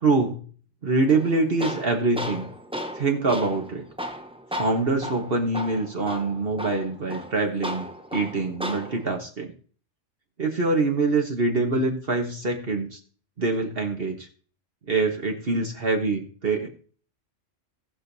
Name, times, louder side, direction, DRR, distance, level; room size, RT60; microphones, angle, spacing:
voice 1, 0.0-0.4 0.8-2.5 2.9-3.8 4.6-7.9 8.1-9.5 10.4-13.0 13.4-14.3 14.9-16.7, right 3 dB, 50° right, 3 dB, 1.3 m, -24 dB
Tools, 1.1-9.1, equal, 5° right, 0.6 m, -35 dB
18.5 x 6.5 x 2.7 m, 0.42 s
omnidirectional pair, 1.3 m